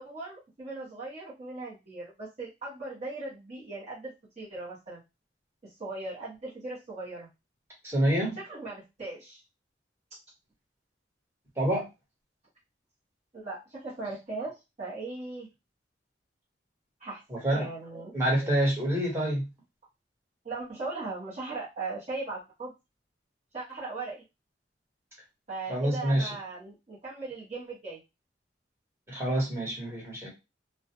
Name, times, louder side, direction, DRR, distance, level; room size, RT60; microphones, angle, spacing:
voice 1, 0.0-5.0 5.6-7.3 8.4-9.4 13.3-15.5 17.0-18.1 20.4-22.7 23.5-24.2 25.5-28.0, right 3 dB, 40° right, -7 dB, 0.8 m, -38 dB
voice 2, 7.8-8.4 11.6-11.9 17.3-17.7 18.1-19.5 25.7-26.3 29.1-30.3, right 1 dB, 15° right, -4 dB, 1.1 m, -27 dB
2.3 x 2.1 x 2.8 m, 0.24 s
head